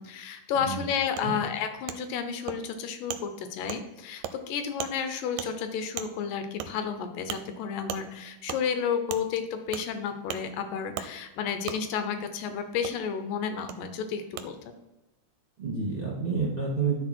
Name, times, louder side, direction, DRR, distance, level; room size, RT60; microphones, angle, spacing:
voice 1, 0.0-14.6, left 7 dB, 85° left, 7 dB, 2.5 m, -31 dB
Wood, 1.2-1.3 1.9-2.0 2.5-2.6 3.1-3.2 3.7-3.8 4.2-4.3 4.8-4.9 5.4-5.5 6.0-6.1 6.6-6.7 7.3-7.4 7.9-8.0 8.5-8.6 9.1-9.2 9.7-9.9 10.3-10.4 11.0-11.1 11.7-11.8 12.8-12.9 13.7-13.8 14.4-14.5, right 10 dB, 85° right, 2.3 m, -35 dB
voice 2, 15.6-17.0, right 4 dB, 20° right, -5 dB, 1.8 m, -29 dB
11.0 x 4.2 x 4.5 m, 1.1 s
omnidirectional pair, 3.8 m